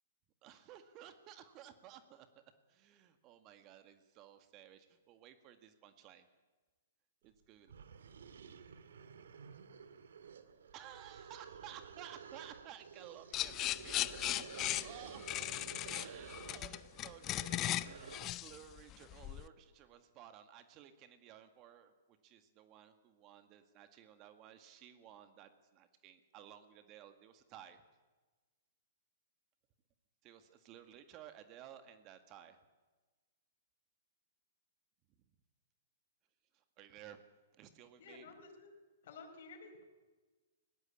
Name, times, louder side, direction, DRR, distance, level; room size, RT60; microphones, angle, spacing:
voice 1, 0.4-2.4 2.7-6.3 7.2-7.7 10.7-27.8 30.2-32.6 36.8-37.2 37.6-38.3, right 10 dB, 35° right, 9 dB, 1.9 m, -56 dB
sound 1, 7.3-7.4 7.7-18.5, right 6 dB, 70° right, 1.9 m, -52 dB
sound 2, 13.3-19.5, left 15 dB, 30° left, 0.7 m, -38 dB
voice 2, 38.0-38.7 39.0-39.9, left 4 dB, 60° left, 2 dB, 4.6 m, -53 dB
21.0 x 17.5 x 8.5 m, 1.3 s
hypercardioid pair, 120°, 0 cm